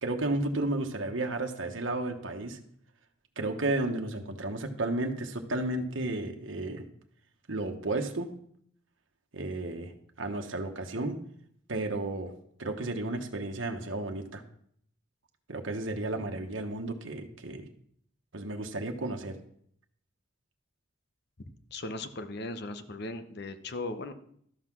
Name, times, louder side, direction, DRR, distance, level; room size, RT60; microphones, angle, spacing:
voice 1, 0.0-2.6 3.4-6.8 7.5-8.3 9.3-9.9 10.2-11.2 11.7-12.3 12.6-14.4 15.5-17.7 18.3-19.4, right 2 dB, 75° right, 4 dB, 1.2 m, -33 dB
voice 2, 21.7-24.1, left 2 dB, 55° left, 10 dB, 0.9 m, -37 dB
12.5 x 5.8 x 6.1 m, 0.66 s
head